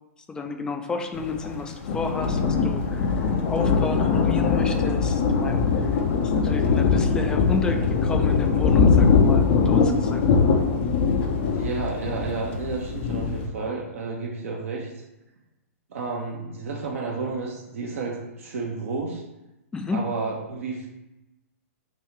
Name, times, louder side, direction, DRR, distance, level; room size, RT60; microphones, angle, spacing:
voice 1, 0.3-10.2 19.7-20.1, left 4 dB, 10° left, 5 dB, 0.4 m, -31 dB
Thunder, 1.1-13.5, left 5 dB, 45° left, 0.6 m, -22 dB
voice 2, 11.4-15.0 15.9-19.2 19.9-20.9, right 4 dB, 60° right, -2 dB, 0.7 m, -31 dB
3.1 x 2.7 x 4.4 m, 0.96 s
hypercardioid pair, 120°, 8 cm